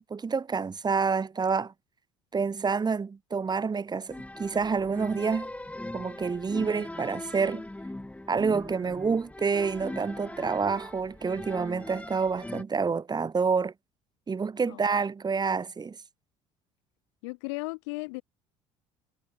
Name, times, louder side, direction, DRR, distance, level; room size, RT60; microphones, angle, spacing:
voice 1, 0.0-1.7 2.3-5.5 5.9-7.6 8.3-13.7 14.3-16.0, right 5 dB, 30° right, 2.7 m, -28 dB
sound 1, 4.1-12.6, left 1 dB, 10° left, 4.5 m, -40 dB
voice 2, 17.2-18.2, left 30 dB, 75° left, 1.7 m, -35 dB
hypercardioid pair, 65°, 15 cm